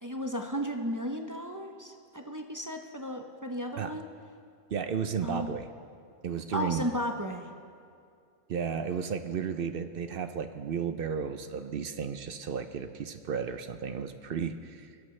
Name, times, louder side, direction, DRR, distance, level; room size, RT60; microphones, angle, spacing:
voice 1, 0.0-4.1 5.2-5.5 6.5-7.5, equal, 20° right, 3 dB, 0.6 m, -34 dB
voice 2, 4.7-5.7 6.2-6.9 8.5-14.9, right 7 dB, 55° right, 9 dB, 0.7 m, -33 dB
23.5 x 12.0 x 3.2 m, 2.4 s
omnidirectional pair, 1.3 m